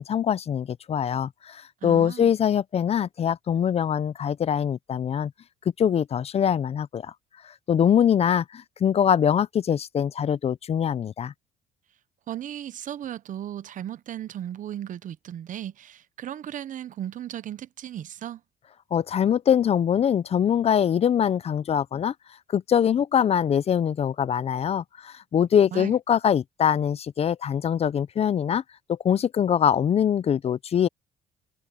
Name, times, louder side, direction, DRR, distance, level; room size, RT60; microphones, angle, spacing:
voice 1, 0.0-5.3 5.8-7.1 7.4-11.3 18.9-22.1 22.5-28.6 28.9-30.9, left 8 dB, 35° left, 0.5 m, -23 dB
voice 2, 1.8-2.3 12.3-18.4 25.7-25.9, right 11 dB, 50° right, 0.8 m, -36 dB
cardioid pair, 110°, 17 cm